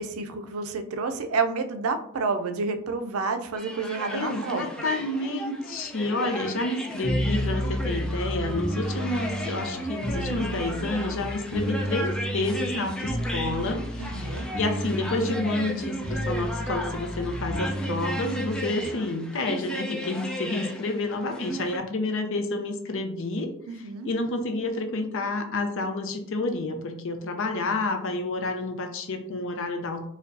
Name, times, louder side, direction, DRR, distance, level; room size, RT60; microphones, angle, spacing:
voice 1, 0.0-4.6 14.0-14.5 23.7-24.1, right 4 dB, 75° right, 7 dB, 0.4 m, -29 dB
sound 1, 3.6-21.8, equal, 5° left, 0.4 m, -36 dB
voice 2, 4.1-23.5 24.0-30.0, left 2 dB, 65° left, 6 dB, 0.6 m, -29 dB
sound 2, 7.0-18.9, equal, 20° right, 0.9 m, -31 dB
4.5 x 2.2 x 2.6 m, 0.69 s
head